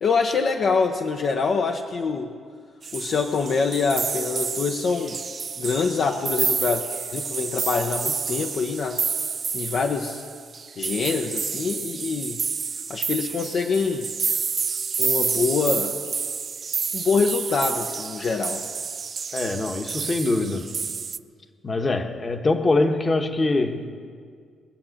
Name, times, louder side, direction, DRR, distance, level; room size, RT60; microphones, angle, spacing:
voice 1, 0.0-2.3 2.9-5.2 5.6-6.8 7.1-9.0 9.5-10.2 10.8-12.4 12.9-14.1 15.0-15.9 16.9-18.6, left 5 dB, 55° left, 3 dB, 0.8 m, -25 dB
sound 1, 2.8-21.2, right 5 dB, 40° right, 0.4 m, -29 dB
voice 2, 19.3-20.8 21.6-23.9, left 2 dB, 30° left, 6 dB, 1.2 m, -23 dB
21.0 x 7.4 x 6.5 m, 2.1 s
cardioid pair, 90°, 0 cm